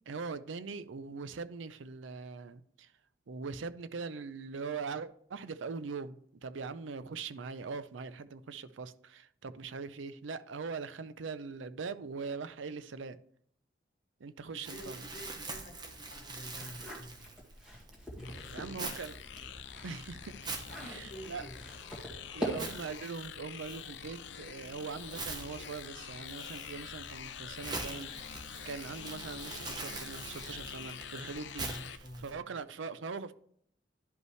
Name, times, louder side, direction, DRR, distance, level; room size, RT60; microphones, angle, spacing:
voice 1, 0.1-2.9 3.3-13.2 14.2-15.0 18.5-19.2 19.8-20.5 20.8-21.5 22.3-33.3, right 4 dB, 90° right, 0.5 m, -42 dB
voice 2, 14.4-17.4 18.1-19.1 20.6-21.6 31.6-32.5, equal, 50° left, 1.6 m, -49 dB
Crumpling crinkling, 14.6-32.3, right 3 dB, 20° right, 0.9 m, -45 dB
sound 1, 16.5-18.7 19.1-22.9, equal, 5° right, 1.9 m, -42 dB
sound 2, 18.2-32.0, left 8 dB, 70° left, 0.5 m, -46 dB
11.0 x 5.4 x 3.2 m
head